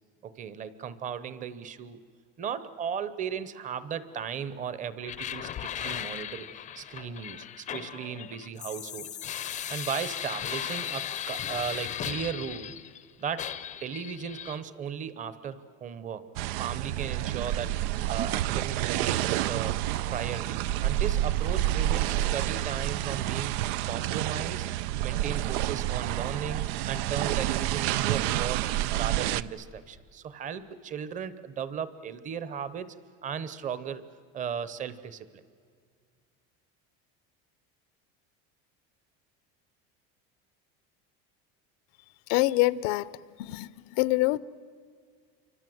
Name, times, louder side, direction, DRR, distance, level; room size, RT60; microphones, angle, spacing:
voice 1, 0.2-2.0 2.4-6.5 6.7-9.1 9.7-12.7 13.2-16.3 16.6-17.8 18.1-19.8 20.1-24.7 25.0-28.7 28.9-32.9 33.2-34.0 34.3-35.4, right 7 dB, 25° right, 0.9 m, -36 dB
sound 1, 5.0-13.0 13.4-14.6, left 10 dB, 25° left, 0.6 m, -37 dB
sound 2, 16.4-29.4, right 13 dB, 90° right, 0.7 m, -29 dB
voice 2, 42.3-43.1 43.4-44.4, left 19 dB, 75° left, 0.8 m, -25 dB
28.5 x 25.0 x 7.9 m
cardioid pair, 175°, 30 cm